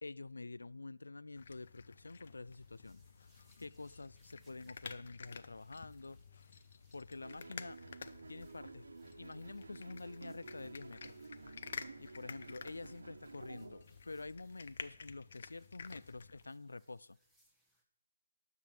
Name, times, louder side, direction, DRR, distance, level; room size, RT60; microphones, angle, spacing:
voice 1, 0.0-3.0 3.6-6.2 6.9-7.8 8.3-8.8 9.2-11.2 12.0-17.2, left 3 dB, 90° left, 20 dB, 0.3 m, -48 dB
sound 1, 1.3-16.4, left 5 dB, 55° left, 0.6 m, -52 dB
sound 2, 2.5-17.8, right 1 dB, ahead, 1.5 m, -76 dB
sound 3, 7.2-13.8, right 3 dB, 75° right, 1.1 m, -53 dB
12.0 x 6.0 x 7.6 m, 0.78 s
hypercardioid pair, 155°, 0 cm